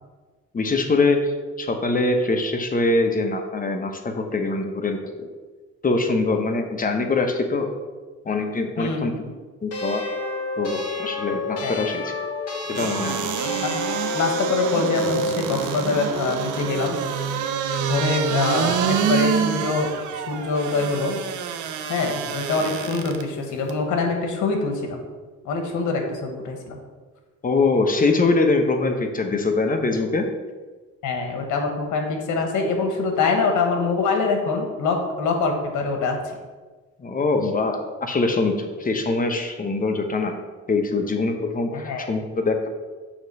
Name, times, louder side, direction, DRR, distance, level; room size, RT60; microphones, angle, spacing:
voice 1, 0.5-5.3 5.8-7.7 8.2-9.1 9.6-10.0 10.6-12.1 12.7-13.3 27.4-30.3 37.0-40.4 40.7-42.7, left 3 dB, 30° left, 4 dB, 0.9 m, -23 dB
voice 2, 8.8-9.3 11.6-11.8 13.6-13.7 14.1-17.0 17.9-21.2 21.9-25.0 25.4-26.8 31.0-36.4 41.7-42.1, left 3 dB, 80° left, 3 dB, 1.3 m, -24 dB
sound 1, 9.7-15.4, left 2 dB, 55° left, 1.8 m, -29 dB
sound 2, 12.7-23.2 23.7-23.8, right 7 dB, 80° right, 0.6 m, -27 dB
7.1 x 3.1 x 5.4 m, 1.3 s
cardioid pair, 90°, 30 cm